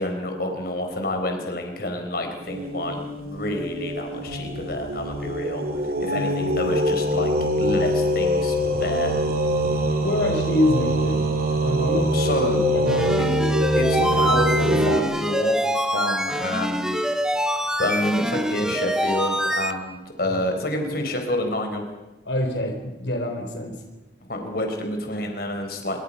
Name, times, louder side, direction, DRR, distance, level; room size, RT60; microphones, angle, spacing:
voice 1, 0.0-3.0 3.2-5.6 6.0-8.5 8.8-9.1 12.1-12.6 13.8-15.7 15.9-17.0 17.8-21.8 24.3-26.0, left 1 dB, 55° left, 4 dB, 4.5 m, -28 dB
sound 1, 2.4-15.0, equal, 55° right, 3.2 m, -24 dB
voice 2, 10.0-12.3 12.7-13.2 20.3-20.4 22.2-23.8, left 1 dB, 80° left, 3 dB, 4.3 m, -26 dB
sound 2, 12.9-19.7, equal, 5° right, 1.5 m, -25 dB
27.0 x 24.0 x 5.7 m, 1.1 s
head